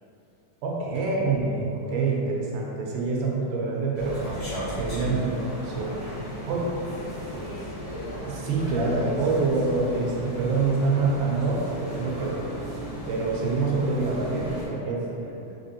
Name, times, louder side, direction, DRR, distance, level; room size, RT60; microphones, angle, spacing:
voice 1, 0.6-4.2 4.7-6.0 6.4-6.6 8.2-12.4 13.1-15.0, right 3 dB, 80° right, -2 dB, 2.2 m, -26 dB
sound 1, 3.9-14.6, equal, 45° left, 0.9 m, -35 dB
voice 2, 6.2-7.8 12.3-12.5 14.8-14.9 15.2-15.6, equal, 85° left, -14 dB, 1.0 m, -47 dB
5.0 x 3.8 x 2.7 m, 2.9 s
omnidirectional pair, 3.8 m